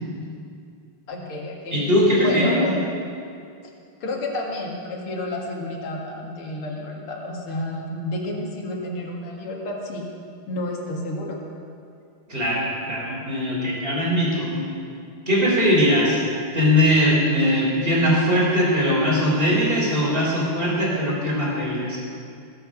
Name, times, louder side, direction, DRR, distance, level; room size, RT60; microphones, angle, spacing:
voice 1, 1.1-2.7 4.0-10.1 10.5-11.4, left 1 dB, 85° left, -1 dB, 2.8 m, -30 dB
voice 2, 1.7-2.6 12.3-14.6 15.3-16.2 16.5-22.0, equal, 25° right, -4 dB, 3.9 m, -20 dB
20.0 x 7.8 x 6.2 m, 2.4 s
omnidirectional pair, 2.3 m